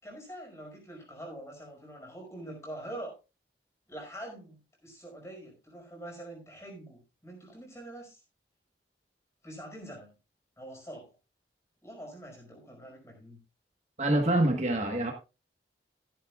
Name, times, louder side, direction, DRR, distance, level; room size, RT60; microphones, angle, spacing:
voice 1, 0.0-3.1 3.9-8.2 9.4-10.1 10.6-11.1 11.8-13.4, right 1 dB, 15° left, 5.2 m, -45 dB
voice 2, 14.0-15.1, right 1 dB, 40° right, 1.4 m, -25 dB
15.5 x 10.5 x 2.4 m
head